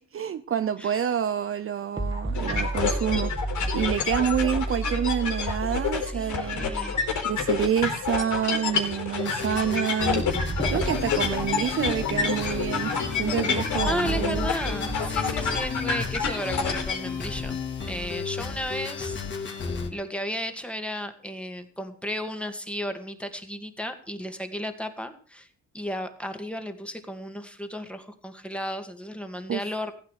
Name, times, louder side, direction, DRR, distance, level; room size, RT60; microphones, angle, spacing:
voice 1, 0.0-3.3 3.7-6.7 7.2-10.2 10.7-12.9 13.2-14.5 29.5-29.6, right 8 dB, 45° right, 0.8 m, -27 dB
sound 1, 2.0-8.3 8.7-8.8 10.3-12.8 13.8-16.5, right 1 dB, 15° right, 1.9 m, -33 dB
sound 2, 2.3-17.0, left 5 dB, 75° left, 4.0 m, -28 dB
voice 2, 6.0-7.0 13.7-17.6 17.9-19.6 19.9-25.5 25.7-29.9, equal, 5° left, 2.2 m, -34 dB
sound 3, 9.1-19.9, left 5 dB, 40° left, 3.0 m, -33 dB
15.5 x 8.7 x 6.6 m
cardioid pair, 90°, 30 cm